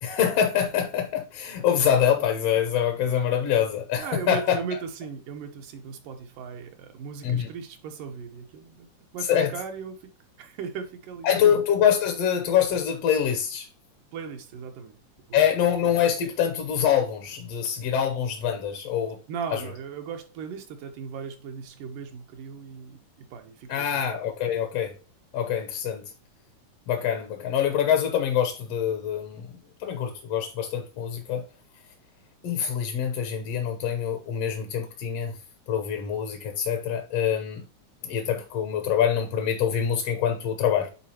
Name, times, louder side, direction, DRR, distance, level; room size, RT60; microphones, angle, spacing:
voice 1, 0.0-4.6 7.2-7.5 9.3-9.5 11.2-13.7 15.3-19.2 19.5-19.6 23.7-24.9 25.3-26.0 26.9-29.5 29.8-31.5 32.4-35.4 35.7-37.6 38.0-40.9, left 9 dB, 65° left, 1.7 m, -25 dB
voice 2, 4.0-8.9 9.1-10.0 10.4-11.5 14.1-15.0 15.3-15.4 19.3-23.0 23.3-23.9, right 6 dB, 85° right, 2.7 m, -37 dB
10.0 x 4.1 x 2.9 m
omnidirectional pair, 3.7 m